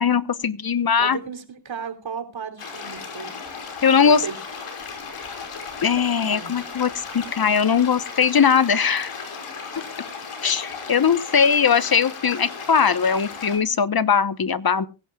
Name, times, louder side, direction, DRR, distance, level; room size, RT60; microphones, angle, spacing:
voice 1, 0.0-1.2 3.8-4.2 5.8-9.1 10.4-14.9, left 6 dB, 45° left, 1.1 m, -20 dB
voice 2, 1.0-3.4 4.0-4.3 6.3-6.5 9.7-9.8, right 6 dB, 65° right, 3.3 m, -34 dB
sound 1, 2.6-13.6, left 5 dB, 80° left, 5.3 m, -36 dB
23.5 x 11.5 x 2.3 m
cardioid pair, 50°, 50 cm